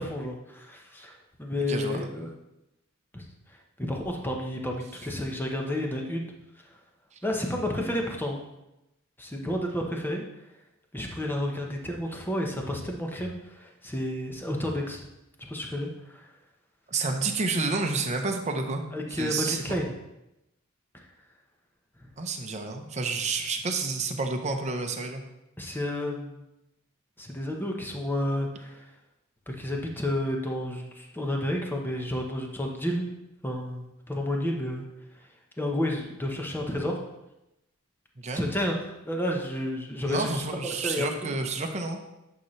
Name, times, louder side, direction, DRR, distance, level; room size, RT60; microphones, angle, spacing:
voice 1, 0.0-2.3 3.1-3.2 3.8-6.3 7.2-8.4 9.2-10.2 10.9-15.0 15.4-16.3 18.9-19.9 25.6-26.4 27.2-28.8 29.5-33.0 33.4-34.9 35.6-37.0 38.3-38.7 39.0-41.3, left 1 dB, 10° left, 1 dB, 1.0 m, -31 dB
voice 2, 1.7-2.1 16.9-18.8 19.1-19.8 22.2-25.2 38.2-38.4 40.1-42.0, right 3 dB, 35° right, 3 dB, 0.8 m, -30 dB
9.2 x 5.7 x 3.2 m, 0.91 s
head